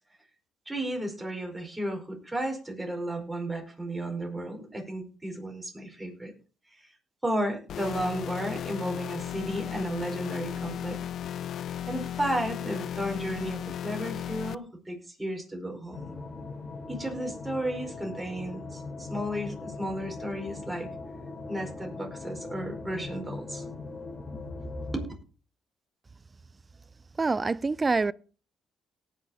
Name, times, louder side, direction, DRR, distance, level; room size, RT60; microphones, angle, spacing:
voice 1, 0.7-6.3 6.8-6.9 7.2-11.0 11.9-16.1 16.9-20.9 21.5-23.6 24.3-24.4 24.9-25.1, right 1 dB, 10° right, 4.9 m, -33 dB
sound 1, 7.7-14.6, left 10 dB, 65° left, 0.4 m, -35 dB
sound 2, 15.9-25.1, left 3 dB, 25° left, 3.7 m, -40 dB
voice 2, 27.2-28.1, right 3 dB, 25° right, 0.4 m, -25 dB
18.5 x 6.4 x 4.3 m
cardioid pair, 90°, 0 cm